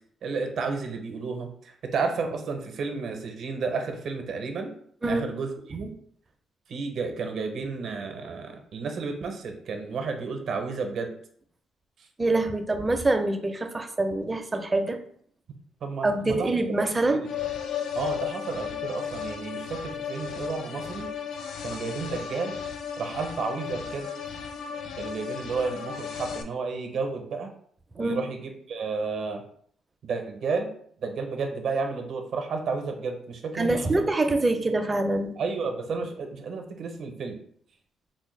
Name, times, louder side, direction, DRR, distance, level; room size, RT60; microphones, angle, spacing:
voice 1, 0.2-4.7 5.0-5.9 6.7-11.1 15.8-16.5 17.1-17.3 17.9-21.1 21.6-22.6 23.0-24.1 25.0-27.5 28.0-29.4 30.0-30.7 31.0-34.1 35.4-37.4, right 4 dB, 65° right, 5 dB, 0.6 m, -32 dB
voice 2, 12.2-15.0 16.0-17.3 28.0-28.2 33.5-35.3, right 2 dB, 20° right, 7 dB, 0.4 m, -25 dB
sound 1, 17.2-26.4, left 8 dB, 80° left, 0.4 m, -35 dB
4.0 x 2.1 x 3.1 m, 0.62 s
cardioid pair, 90°, 0 cm